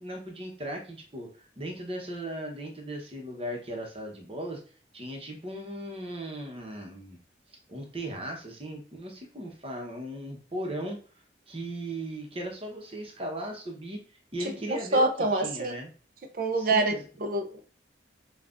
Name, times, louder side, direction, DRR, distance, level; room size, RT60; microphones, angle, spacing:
voice 1, 0.0-4.6 4.9-7.2 7.7-11.0 11.5-14.0 14.3-15.9 16.6-17.0, right 1 dB, 30° right, 1 dB, 0.9 m, -37 dB
voice 2, 14.7-15.8 16.3-16.9 17.2-17.6, right 2 dB, 45° right, 6 dB, 0.5 m, -26 dB
5.7 x 2.4 x 2.5 m, 0.39 s
head